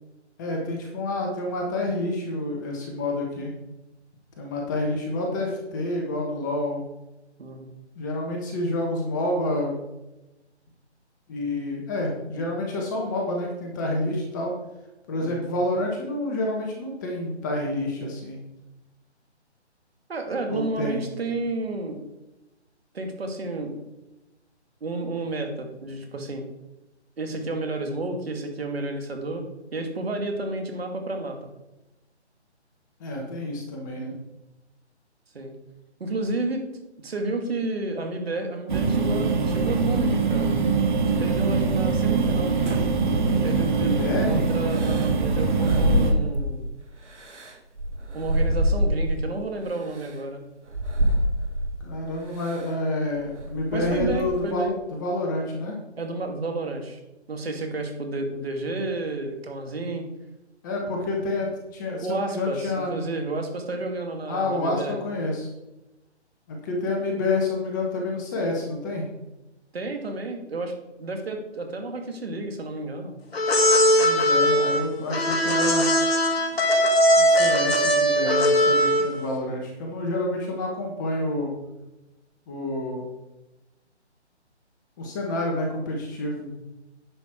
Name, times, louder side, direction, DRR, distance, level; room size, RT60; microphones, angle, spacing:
voice 1, 0.4-3.5 4.4-6.8 7.9-9.7 11.3-14.5 15.1-18.4 20.5-21.0 33.0-34.2 43.7-44.5 51.8-55.8 60.6-63.1 64.3-65.5 66.5-69.1 73.9-75.9 77.2-81.5 82.5-83.0 85.0-86.4, left 2 dB, 15° left, 0 dB, 1.2 m, -28 dB
voice 2, 7.4-7.7 15.2-15.4 20.1-22.0 22.9-23.7 24.8-26.4 27.2-29.5 29.7-31.5 35.3-35.5 36.0-36.6 37.0-40.6 41.2-42.6 43.4-44.0 44.3-46.7 48.1-50.4 53.7-54.7 56.0-57.0 57.3-60.1 62.0-65.0 69.7-73.2 86.4-86.5, right 2 dB, 60° right, 4 dB, 2.3 m, -31 dB
sound 1, 38.7-46.1, right 4 dB, 45° right, 1.8 m, -23 dB
sound 2, 42.7-43.8 44.7-46.6 47.1-49.3 49.9-50.1 50.7-51.8 52.4-52.7 53.1-54.5, equal, 85° right, 2.1 m, -26 dB
sound 3, 73.3-79.2, equal, 60° left, 1.8 m, -20 dB
10.0 x 6.2 x 4.5 m, 0.99 s
figure-of-eight pair, 155°, 35 cm